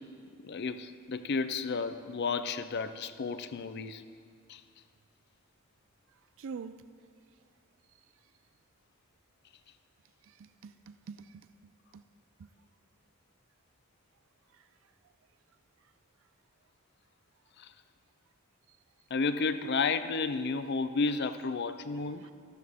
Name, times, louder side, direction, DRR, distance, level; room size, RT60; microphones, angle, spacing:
voice 1, 0.4-4.0 4.5-4.6 17.6-17.7 19.1-22.3, left 4 dB, 50° left, 0.5 m, -32 dB
voice 2, 6.4-6.8 10.3-11.5 11.9-12.0 12.4-12.5 22.2-22.3, right 5 dB, 60° right, 0.3 m, -45 dB
14.0 x 13.0 x 3.6 m
head